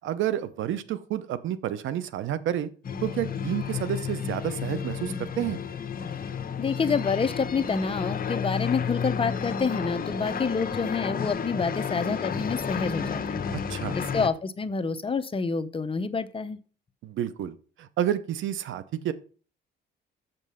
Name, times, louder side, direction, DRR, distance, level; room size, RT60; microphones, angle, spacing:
voice 1, 0.0-2.7 3.0-5.6 13.5-14.0 17.0-19.1, right 11 dB, 75° right, 15 dB, 0.7 m, -30 dB
sound 1, 2.8-14.3, left 7 dB, 45° left, 1.0 m, -31 dB
voice 2, 6.6-13.4 13.9-16.6, left 5 dB, 25° left, 11 dB, 0.7 m, -28 dB
7.4 x 5.4 x 5.6 m, 0.39 s
cardioid pair, 90°, 20 cm